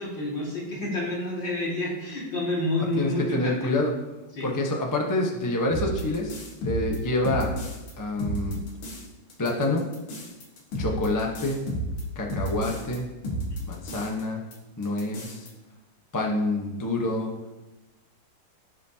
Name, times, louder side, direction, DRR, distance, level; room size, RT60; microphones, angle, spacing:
voice 1, 0.0-3.7 4.3-4.5, left 1 dB, 60° left, -4 dB, 2.9 m, -29 dB
voice 2, 3.0-3.9 4.4-6.4 6.6-7.5 8.0-8.6 9.4-9.8 10.8-11.6 12.1-13.1 13.7-14.4 14.8-15.5 16.1-17.3, left 2 dB, 20° left, -1 dB, 0.4 m, -27 dB
sound 1, 5.7-7.9 8.2-9.0 9.3-13.0 13.2-14.2 14.5-14.6 14.8-15.5, right 1 dB, 85° left, 2.4 m, -32 dB
15.5 x 5.2 x 2.8 m, 1.1 s
omnidirectional pair, 2.3 m